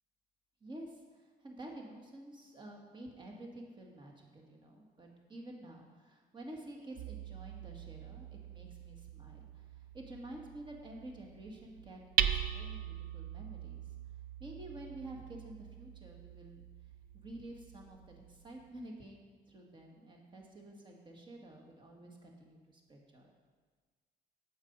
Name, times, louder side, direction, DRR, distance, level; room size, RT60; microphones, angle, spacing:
voice 1, 0.6-13.8 14.4-16.6 17.1-23.3, right 1 dB, 30° right, 1 dB, 1.8 m, -50 dB
Hammer, 7.0-18.7, right 10 dB, 75° right, 0.5 m, -41 dB
8.0 x 7.5 x 5.4 m, 1.4 s
cardioid pair, 110°, 15 cm